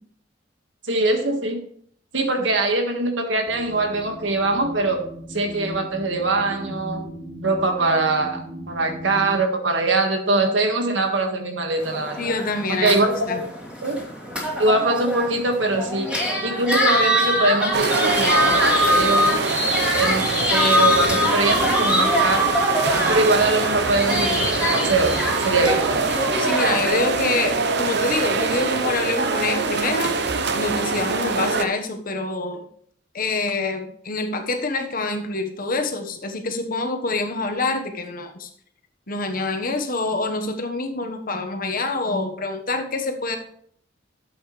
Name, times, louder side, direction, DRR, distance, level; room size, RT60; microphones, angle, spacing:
voice 1, 0.9-1.6 2.1-5.0 5.3-7.0 7.4-12.3 12.7-13.4 13.8-14.0 14.6-16.1 16.4-19.5 19.9-22.5 23.1-26.3, right 2 dB, 85° right, 4 dB, 1.7 m, -22 dB
sound 1, 3.5-9.4, equal, 25° right, 3.9 m, -37 dB
sound 2, 11.8-26.9, left 1 dB, 5° right, 2.7 m, -23 dB
voice 2, 12.2-13.4 26.4-30.2 30.5-32.7 33.1-38.5 39.1-43.4, left 3 dB, 50° left, 5 dB, 1.2 m, -26 dB
sound 3, 17.7-31.7, right 4 dB, 65° right, 0.9 m, -24 dB
11.5 x 8.0 x 3.2 m, 0.63 s
head